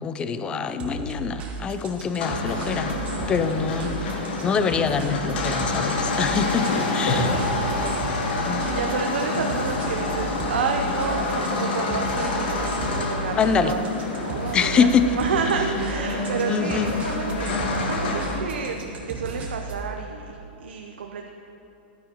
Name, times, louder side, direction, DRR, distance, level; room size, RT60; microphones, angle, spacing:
voice 1, 0.0-3.0 3.3-7.3 8.5-8.7 13.4-13.8 14.5-15.1 16.5-16.9, left 6 dB, 15° left, 10 dB, 0.3 m, -25 dB
sound 1, 0.8-19.9, right 2 dB, 25° right, 1.1 m, -35 dB
sound 2, 1.5-1.6 1.8-11.1 11.4-11.8 12.2-13.0 13.3-13.4 14.4-14.7 14.9-15.0 15.4-15.5 17.1-17.2 17.9-18.0, left 1 dB, 85° left, 2.4 m, -34 dB
sound 3, 2.2-18.4, left 2 dB, 65° left, 1.3 m, -28 dB
voice 2, 8.6-13.8 14.1-14.9 15.1-16.8 17.1-18.8 19.1-21.3, right 6 dB, 90° right, 3 dB, 0.6 m, -30 dB
12.0 x 9.7 x 2.9 m, 2.9 s
hypercardioid pair, 150°, 6 cm